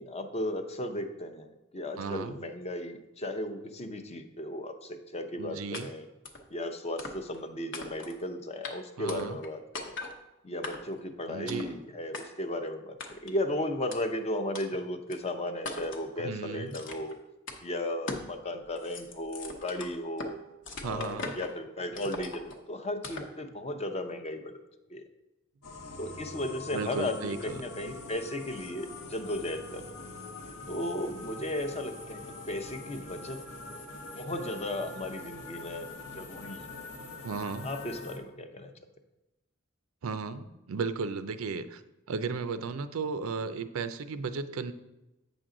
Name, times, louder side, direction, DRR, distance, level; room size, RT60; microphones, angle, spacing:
voice 1, 0.0-6.1 6.5-10.0 10.4-17.2 17.6-20.4 20.8-24.5 24.9-25.0 26.0-30.0 30.7-32.2 32.5-33.4 34.2-36.7 37.6-38.7, left 1 dB, 30° left, 7 dB, 0.6 m, -35 dB
voice 2, 2.0-2.4 5.4-5.9 9.0-9.4 11.3-11.8 16.2-16.8 20.8-21.3 26.7-27.6 37.2-37.7 40.0-41.8 42.1-44.7, right 4 dB, 75° right, 11 dB, 0.5 m, -35 dB
sound 1, 5.7-5.8 6.2-6.4 7.0-7.4 7.7-8.2 8.6-8.7 9.1-9.5 9.7-10.1 10.6-11.0 11.5-11.7 12.1-12.2 13.0-13.4 13.9-14.0 14.5-14.7 15.1-15.2 15.6-16.1 16.7-17.1 17.5-17.6 18.1-18.3 18.6-20.3 20.6-21.5 21.9-22.6 23.0-23.3, left 2 dB, 60° left, 0.9 m, -40 dB
sound 2, 25.6-38.2, left 2 dB, 85° left, 1.1 m, -44 dB
8.1 x 6.1 x 3.8 m, 1.0 s
head